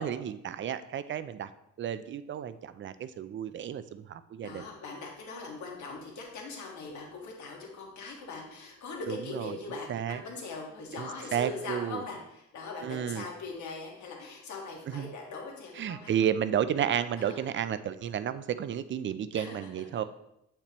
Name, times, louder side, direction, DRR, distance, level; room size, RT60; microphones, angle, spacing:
voice 1, 0.0-1.5 1.8-4.6 9.1-9.6 9.9-10.2 10.9-12.0 12.8-13.3 14.9-15.1 15.8-20.0, right 9 dB, 40° right, 13 dB, 0.4 m, -32 dB
voice 2, 4.4-16.3 17.2-17.4 19.3-19.8, left 3 dB, 70° left, 0 dB, 1.7 m, -41 dB
8.2 x 4.4 x 3.0 m, 0.82 s
cardioid pair, 90°, 30 cm